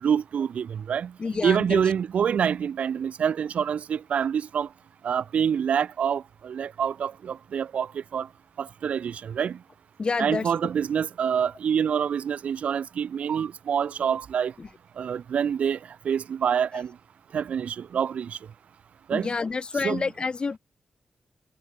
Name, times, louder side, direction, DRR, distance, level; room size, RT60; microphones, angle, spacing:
voice 1, 0.0-1.1 1.4-4.7 5.0-8.3 8.6-9.6 10.2-14.5 15.0-15.8 16.0-16.9 17.3-18.4 19.1-19.3 19.8-20.0, right 8 dB, 80° right, 1.5 m, -26 dB
voice 2, 1.2-1.8 10.0-10.5 14.6-14.7 19.1-20.6, left 4 dB, 45° left, 5.0 m, -28 dB
cardioid pair, 80°, 2 cm